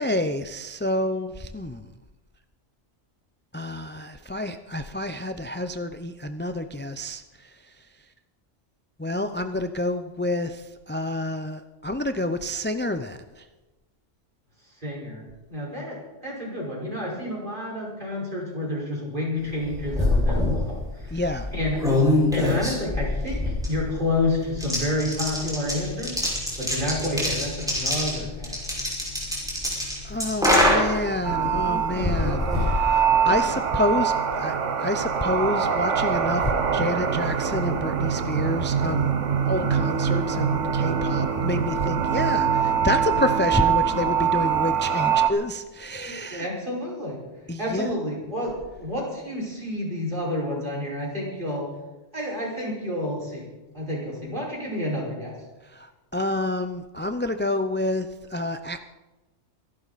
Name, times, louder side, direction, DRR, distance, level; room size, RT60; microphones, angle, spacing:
voice 1, 0.0-1.9 3.5-7.9 9.0-13.5 21.1-21.5 30.0-39.1 39.4-46.5 47.5-47.9 55.6-58.8, left 1 dB, 15° left, 8 dB, 0.4 m, -29 dB
voice 2, 14.6-15.2 15.5-21.2 21.5-21.8 22.3-23.4 23.7-26.2 26.6-28.5 31.2-32.7 33.2-33.3 46.0-47.2 47.6-51.7 52.1-53.5 53.7-55.3, left 1 dB, 40° right, -4 dB, 5.6 m, -30 dB
sound 1, 19.5-33.6, left 1 dB, 5° right, 5.7 m, -26 dB
sound 2, 31.2-45.3, right 7 dB, 75° right, 1.5 m, -24 dB
25.5 x 12.0 x 4.2 m, 1.1 s
omnidirectional pair, 1.3 m